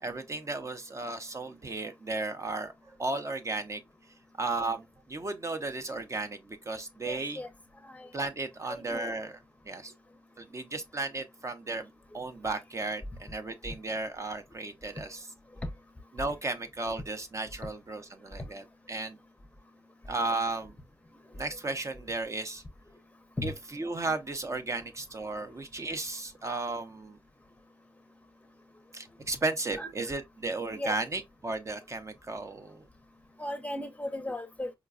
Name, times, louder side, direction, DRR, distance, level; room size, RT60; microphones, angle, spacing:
voice 1, 0.0-2.7 3.0-3.8 4.4-4.8 5.1-7.4 8.1-9.4 9.7-9.9 10.4-11.9 12.1-15.3 16.1-19.2 20.1-20.7 21.3-22.6 23.4-27.2 28.9-32.8, right 3 dB, 35° right, 0.5 m, -34 dB
voice 2, 7.0-7.5 7.8-8.1 8.7-9.1 23.4-23.5 29.8-29.9 30.7-31.0 33.4-34.7, left 1 dB, 15° left, 0.6 m, -36 dB
4.7 x 2.2 x 2.4 m
cardioid pair, 85°, 9 cm